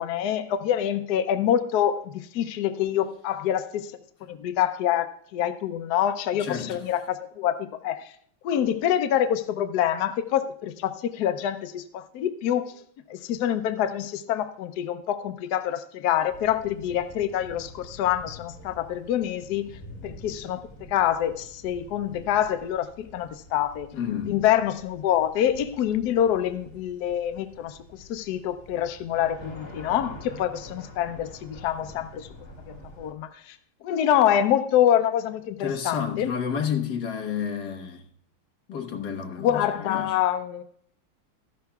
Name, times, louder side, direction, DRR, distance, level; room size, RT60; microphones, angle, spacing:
voice 1, 0.0-3.9 4.2-8.1 8.4-12.7 13.1-19.7 20.0-23.9 24.3-32.3 32.7-33.6 33.8-36.3 39.4-40.6, left 10 dB, 80° left, 0.8 m, -26 dB
voice 2, 6.4-6.8 23.9-24.4 35.6-38.0 38.7-40.1, left 7 dB, 55° left, 1.6 m, -30 dB
sound 1, 16.3-33.1, left 1 dB, 30° left, 2.5 m, -46 dB
14.0 x 11.5 x 2.3 m
omnidirectional pair, 2.4 m